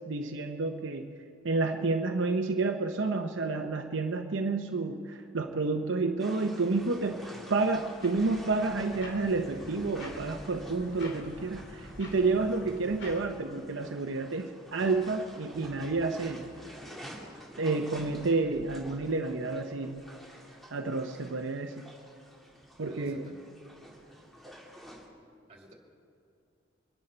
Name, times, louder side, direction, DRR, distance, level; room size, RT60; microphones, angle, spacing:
voice 1, 0.1-1.1 1.4-7.2 7.5-16.4 17.6-20.0 20.7-21.7 22.8-23.3, right 3 dB, 75° right, 5 dB, 0.8 m, -30 dB
sound 1, 6.2-25.1, equal, ahead, 1.9 m, -49 dB
sound 2, 7.5-13.3, left 1 dB, 70° left, 3.0 m, -47 dB
voice 2, 22.8-23.4 25.5-25.7, left 1 dB, 30° right, 0 dB, 2.4 m, -51 dB
25.0 x 10.5 x 4.4 m, 2.5 s
head